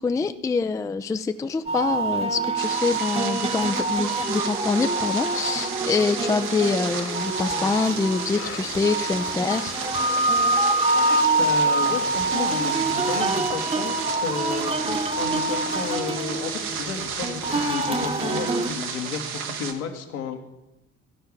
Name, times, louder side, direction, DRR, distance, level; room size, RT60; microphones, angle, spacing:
voice 1, 0.0-9.8, left 4 dB, 10° left, 11 dB, 0.5 m, -25 dB
sound 1, 1.5-18.8, left 6 dB, 30° left, 1.3 m, -42 dB
sound 2, 1.7-18.7, right 2 dB, 15° right, 1.1 m, -26 dB
sound 3, 2.6-19.7, right 6 dB, 75° right, 1.5 m, -33 dB
voice 2, 11.4-20.4, left 6 dB, 70° left, 3 dB, 1.8 m, -32 dB
13.5 x 5.7 x 9.6 m, 0.95 s
figure-of-eight pair, 60°, 44 cm